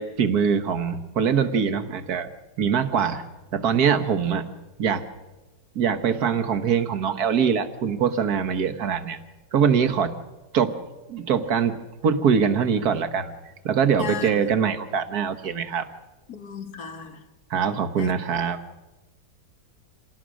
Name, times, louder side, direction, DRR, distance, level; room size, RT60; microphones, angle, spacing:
voice 1, 0.0-2.3 2.6-3.2 3.5-4.5 4.8-5.1 5.8-9.2 9.5-10.2 10.5-10.8 11.1-13.4 13.7-15.9 17.5-18.6, right 7 dB, 60° right, 1.7 m, -23 dB
voice 2, 14.0-14.4 16.3-17.2 18.0-18.1, left 7 dB, 60° left, 1.9 m, -35 dB
27.0 x 18.5 x 6.4 m
omnidirectional pair, 1.9 m